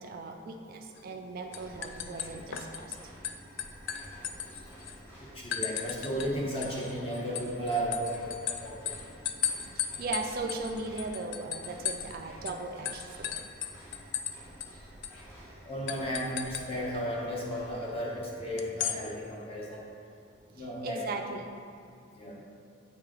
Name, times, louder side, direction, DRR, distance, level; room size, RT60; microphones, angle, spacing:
voice 1, 0.0-3.0 9.8-13.4 20.8-21.5, right 3 dB, 45° right, 4 dB, 0.3 m, -38 dB
sound 1, 1.0-1.2 1.5-3.0 3.2-5.0 5.5-6.3 6.6-12.2 12.5-12.6 12.9-14.3 14.6-14.7 15.0-15.2 15.9-16.7 18.6-19.0, left 9 dB, 60° left, 0.3 m, -35 dB
sound 2, 1.5-19.1, right 1 dB, 10° left, 1.5 m, -51 dB
voice 2, 5.3-8.9 15.7-19.8 20.5-21.0 22.2-22.3, equal, 30° left, -4 dB, 1.0 m, -34 dB
8.3 x 3.2 x 3.7 m, 2.3 s
head